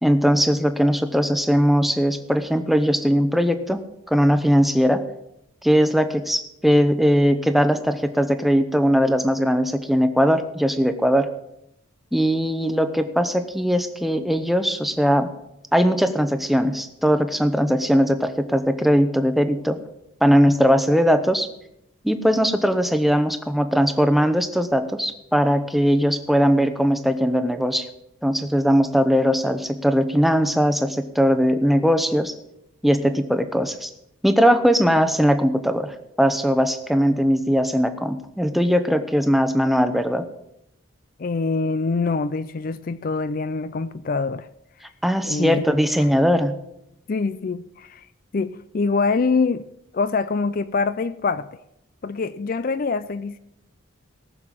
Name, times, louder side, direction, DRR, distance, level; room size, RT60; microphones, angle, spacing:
voice 1, 0.0-3.8 4.1-5.0 5.6-11.3 12.1-15.3 15.7-19.8 20.2-21.5 22.0-27.9 28.2-32.3 32.8-33.9 34.2-40.2 45.0-46.5, equal, ahead, 0.8 m, -20 dB
voice 2, 41.2-44.5 45.2-45.6 47.1-48.0 48.3-49.7 49.9-51.5 52.0-53.4, left 4 dB, 45° left, 0.4 m, -24 dB
18.5 x 6.7 x 7.5 m
head